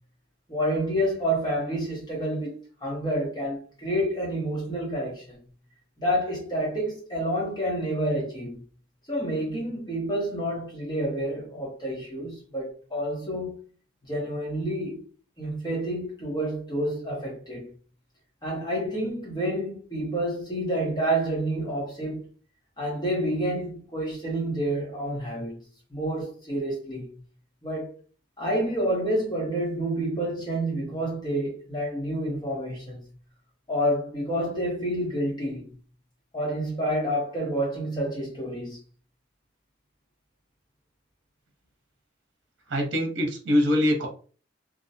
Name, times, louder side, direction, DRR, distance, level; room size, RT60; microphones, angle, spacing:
voice 1, 0.5-5.4 6.0-8.6 9.1-13.6 14.1-15.0 15.4-17.7 18.4-22.2 22.8-25.6 25.9-27.1 27.6-27.9 28.4-33.0 33.7-35.7 36.3-38.8, right 1 dB, 25° left, 0.7 m, -29 dB
voice 2, 42.7-44.1, left 1 dB, 75° right, 0.7 m, -23 dB
2.5 x 2.0 x 2.7 m
head